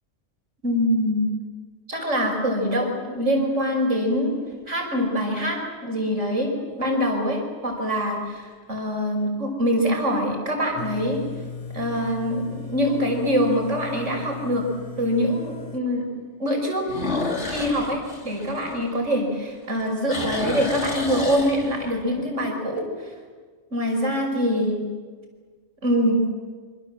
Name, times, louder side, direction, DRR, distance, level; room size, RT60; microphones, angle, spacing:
voice 1, 0.6-1.3 1.9-4.3 4.7-11.2 11.7-14.6 15.0-16.0 16.4-16.8 17.5-23.1 23.7-24.8 25.8-26.2, equal, 85° right, 2 dB, 6.1 m, -24 dB
sound 1, 3.2-3.9 4.5-4.6 9.8-10.3 10.8-10.9 11.4-11.5 11.8-11.9 13.4-13.5 16.8-19.4 19.7-22.1, left 2 dB, 70° left, 3.4 m, -31 dB
sound 2, 10.8-15.8, left 5 dB, 35° left, 0.9 m, -37 dB
26.5 x 26.0 x 7.8 m, 1.5 s
omnidirectional pair, 1.2 m